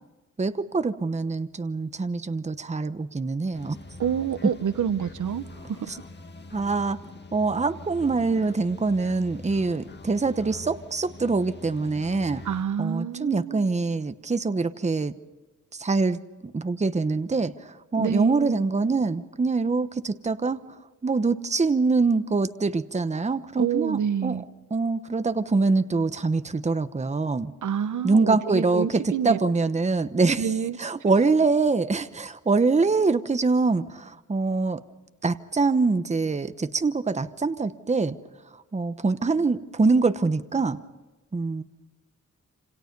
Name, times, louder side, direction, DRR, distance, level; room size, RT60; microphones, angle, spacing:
voice 1, 0.4-3.8 6.5-7.0 7.3-12.4 12.8-15.1 15.7-20.6 21.0-24.4 24.7-27.5 28.0-30.5 30.8-34.8 35.2-38.2 38.7-40.8 41.3-41.6, right 3 dB, 20° right, 1.0 m, -24 dB
sound 1, 3.5-12.6, left 2 dB, 35° left, 1.9 m, -44 dB
voice 2, 4.0-5.9 12.4-13.7 18.0-18.6 23.6-24.4 27.6-29.4 30.4-31.1, right 8 dB, 75° right, 1.1 m, -28 dB
27.5 x 27.5 x 5.4 m
wide cardioid pair, 120°, 30 cm